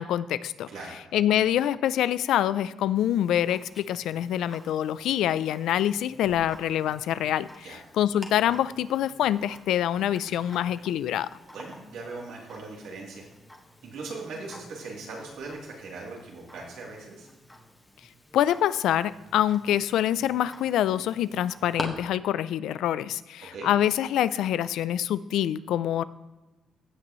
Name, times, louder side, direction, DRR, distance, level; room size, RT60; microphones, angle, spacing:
voice 1, 0.0-0.7 1.1-11.3 18.3-26.0, left 11 dB, 80° left, 17 dB, 0.3 m, -26 dB
Tick-tock, 3.0-21.8, left 1 dB, 10° left, 1.5 m, -47 dB
voice 2, 11.5-13.3 13.8-17.3 23.4-23.7, right 3 dB, 85° right, -3 dB, 2.9 m, -40 dB
16.0 x 6.1 x 3.1 m, 1.1 s
cardioid pair, 90°, 0 cm